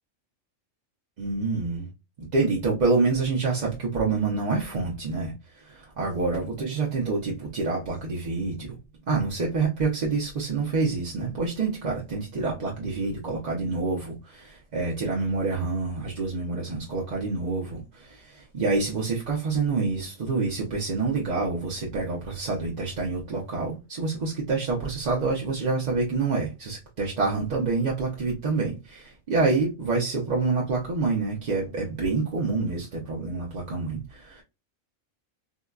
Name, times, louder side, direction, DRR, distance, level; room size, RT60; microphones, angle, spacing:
voice 1, 1.2-1.9 2.2-8.8 9.1-34.4, right 3 dB, 50° right, 0.6 m, -27 dB
3.7 x 2.1 x 2.3 m
omnidirectional pair, 1.4 m